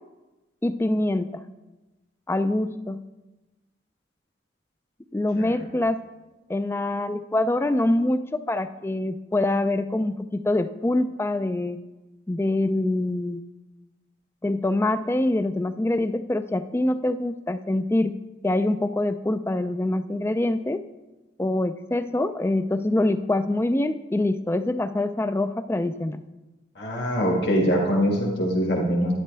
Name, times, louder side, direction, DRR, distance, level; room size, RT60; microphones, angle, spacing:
voice 1, 0.6-1.4 2.3-3.0 5.1-6.0 6.5-11.8 12.3-13.4 14.4-18.1 18.4-20.8 21.4-26.2, left 1 dB, 10° left, 12 dB, 0.3 m, -25 dB
voice 2, 26.7-29.1, equal, 55° left, -2 dB, 1.8 m, -23 dB
11.5 x 10.5 x 3.4 m, 1.1 s
head